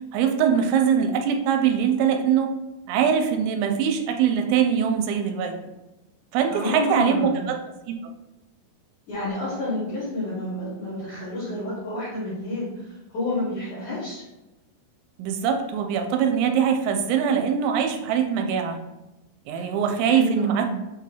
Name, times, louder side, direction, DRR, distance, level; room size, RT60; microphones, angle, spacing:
voice 1, 0.1-2.5 2.9-5.6 6.3-7.6 7.9-8.0 15.2-18.8 19.5-20.7, right 7 dB, 85° right, 4 dB, 2.8 m, -22 dB
voice 2, 6.5-7.5 9.1-14.2 19.5-19.6 20.1-20.6, left 2 dB, 75° left, -9 dB, 1.7 m, -29 dB
6.8 x 3.3 x 2.3 m, 1.0 s
omnidirectional pair, 5.3 m